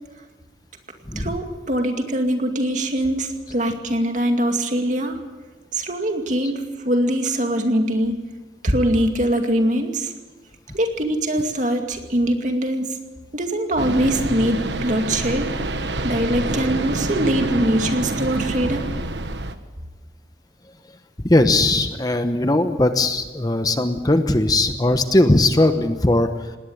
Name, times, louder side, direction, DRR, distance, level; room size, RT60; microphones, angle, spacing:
voice 1, 1.2-5.2 5.7-8.2 8.6-10.1 10.7-13.0 13.3-15.7 16.0-19.0, right 1 dB, 45° right, 4 dB, 2.4 m, -22 dB
sound 1, 13.8-19.5, right 2 dB, 90° right, 1.3 m, -27 dB
voice 2, 21.3-26.3, left 2 dB, 20° left, 8 dB, 0.9 m, -19 dB
19.5 x 18.0 x 8.7 m, 1.3 s
head